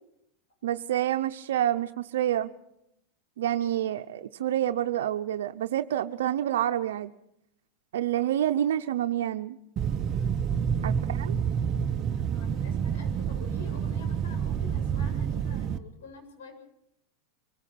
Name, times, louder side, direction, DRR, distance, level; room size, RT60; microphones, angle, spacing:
voice 1, 0.6-2.5 3.4-7.1 7.9-9.6 10.8-11.4, right 11 dB, 90° right, 7 dB, 0.8 m, -28 dB
sound 1, 9.8-15.8, right 7 dB, 35° right, 0.9 m, -28 dB
voice 2, 10.6-11.3 12.0-16.6, left 4 dB, 90° left, 5 dB, 8.0 m, -49 dB
26.0 x 18.0 x 5.9 m, 0.78 s
supercardioid pair, 130°, 0 cm